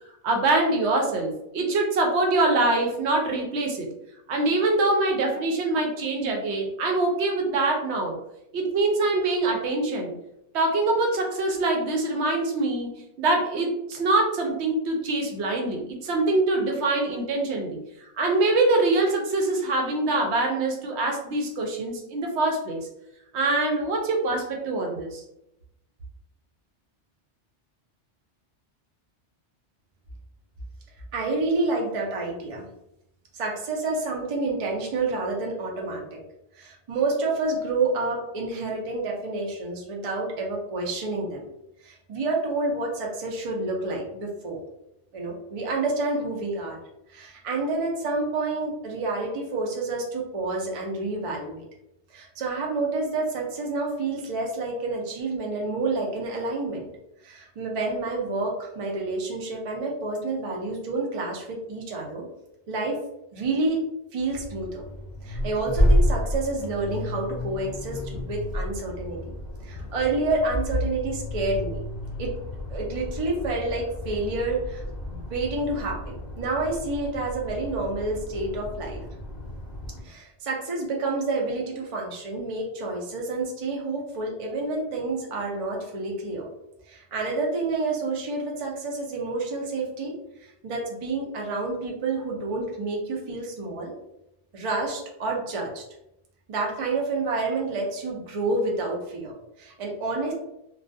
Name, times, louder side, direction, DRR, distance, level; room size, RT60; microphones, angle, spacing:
voice 1, 0.2-3.9 4.3-8.2 8.5-10.1 10.5-17.8 18.2-22.8 23.3-25.2, right 2 dB, 75° right, 2 dB, 0.8 m, -24 dB
voice 2, 31.1-32.7 33.3-36.2 36.5-41.5 41.8-44.6 45.1-46.8 47.1-51.6 52.1-56.9 57.2-62.3 62.7-63.0 63.3-63.8 64.1-64.8 65.2-69.3 69.6-71.8 72.2-72.3 72.7-79.0 80.0-86.5 86.9-90.1 90.4-93.9 94.5-95.8 96.5-100.3, right 3 dB, 45° right, -1 dB, 0.4 m, -29 dB
Accelerating revving vroom, 64.3-80.0, left 1 dB, 45° left, 0.7 m, -30 dB
2.3 x 2.2 x 2.5 m, 0.82 s
omnidirectional pair, 1.2 m